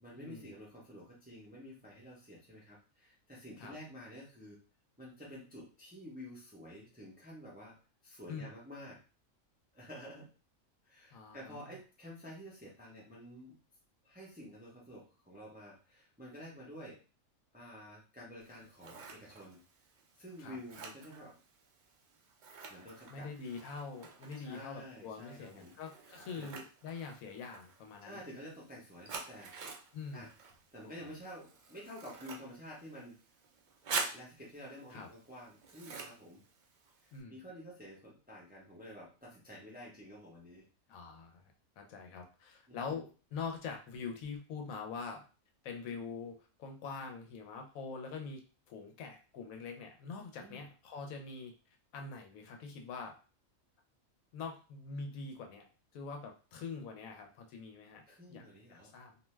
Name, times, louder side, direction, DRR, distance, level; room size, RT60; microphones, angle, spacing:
voice 1, 0.0-4.6 5.0-7.8 8.0-9.0 9.7-10.3 10.8-13.6 14.0-17.0 17.5-19.6 20.2-21.4 22.7-23.3 24.3-25.7 26.3-26.6 28.0-29.5 30.1-30.3 30.7-33.2 34.1-36.4 37.0-40.7 42.7-43.0 50.4-50.6 58.1-58.9, equal, 10° right, -4 dB, 0.5 m, -50 dB
voice 2, 11.1-11.8 20.4-20.6 23.1-28.2 29.9-30.3 34.9-35.1 37.1-37.4 40.9-41.4 41.8-45.2 45.6-48.4 48.7-51.5 51.9-53.1 54.3-55.6 55.9-58.0 58.3-58.4 58.7-59.2, left 5 dB, 85° left, 4 dB, 1.0 m, -44 dB
Scissors, 18.4-37.2, right 4 dB, 75° right, 0.4 m, -47 dB
2.5 x 2.2 x 3.1 m, 0.35 s
omnidirectional pair, 1.4 m